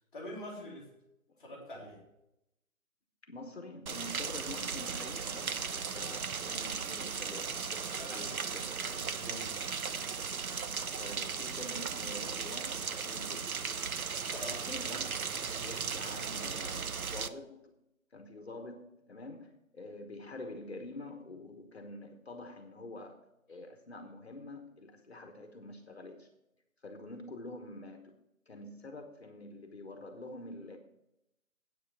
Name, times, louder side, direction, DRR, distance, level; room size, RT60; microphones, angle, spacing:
voice 1, 0.1-0.9 1.4-2.0 7.9-8.3 8.8-9.6 14.3-14.6, left 1 dB, ahead, -14 dB, 2.1 m, -45 dB
voice 2, 3.2-8.7 11.0-13.6 14.5-17.7 18.1-26.3 26.8-28.1 28.5-30.8, left 2 dB, 50° left, 5 dB, 1.3 m, -47 dB
Rain, 3.9-17.3, right 6 dB, 80° right, 0.8 m, -37 dB
Bowed string instrument, 6.0-11.0, right 1 dB, 60° right, 3.5 m, -57 dB
9.5 x 8.6 x 5.9 m, 0.85 s
figure-of-eight pair, 165°, 42 cm